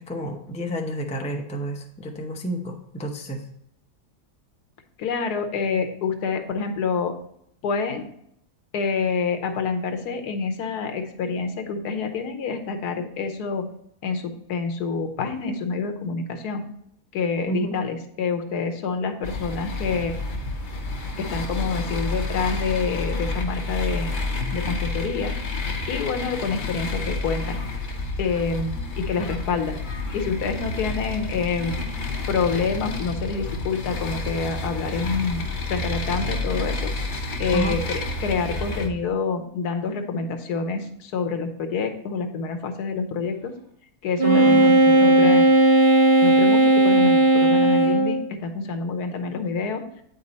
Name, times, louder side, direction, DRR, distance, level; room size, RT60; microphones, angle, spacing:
voice 1, 0.0-3.5 17.5-17.8 37.5-37.8 44.2-45.3, right 1 dB, 10° left, 2 dB, 0.4 m, -30 dB
voice 2, 5.0-7.2 7.6-8.1 8.7-13.7 14.0-16.6 17.1-20.2 21.2-24.2 24.5-25.3 25.9-27.6 28.2-29.8 30.1-32.0 32.3-36.9 37.4-43.5 44.0-45.5 46.2-49.8, left 5 dB, 80° left, 6 dB, 1.4 m, -27 dB
sound 1, 19.2-38.9, left 2 dB, 40° left, 0.7 m, -29 dB
Wind instrument woodwind instrument, 44.2-48.2, right 2 dB, 45° right, 0.9 m, -16 dB
8.7 x 5.3 x 4.1 m, 0.72 s
omnidirectional pair, 1.7 m